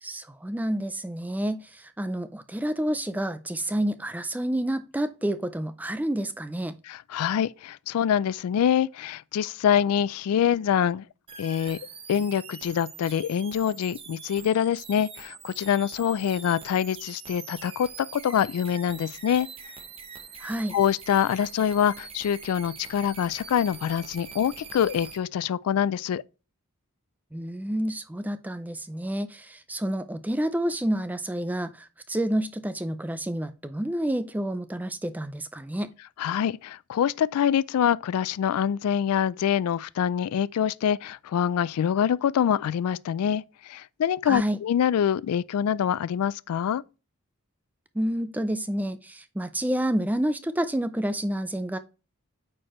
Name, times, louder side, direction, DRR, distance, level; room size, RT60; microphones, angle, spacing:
voice 1, 0.0-6.8 20.4-20.8 27.3-35.9 44.2-44.6 47.9-51.8, right 1 dB, 5° right, 0.3 m, -29 dB
voice 2, 6.8-11.0 11.4-11.8 12.1-19.5 20.7-26.2 36.2-46.8, left 8 dB, 85° left, 0.3 m, -25 dB
sound 1, 11.3-25.2, right 6 dB, 25° right, 0.8 m, -44 dB
8.7 x 4.6 x 3.0 m
head